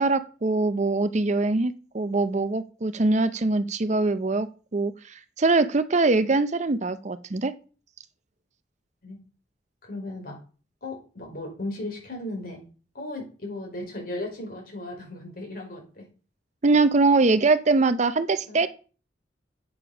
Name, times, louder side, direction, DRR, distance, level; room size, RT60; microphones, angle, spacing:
voice 1, 0.0-7.5 16.6-18.7, right 3 dB, 40° right, 12 dB, 0.6 m, -23 dB
voice 2, 9.8-10.4 10.8-12.6 12.9-16.1 18.5-18.6, left 1 dB, 55° left, 0 dB, 4.8 m, -36 dB
8.7 x 6.9 x 6.0 m, 0.37 s
head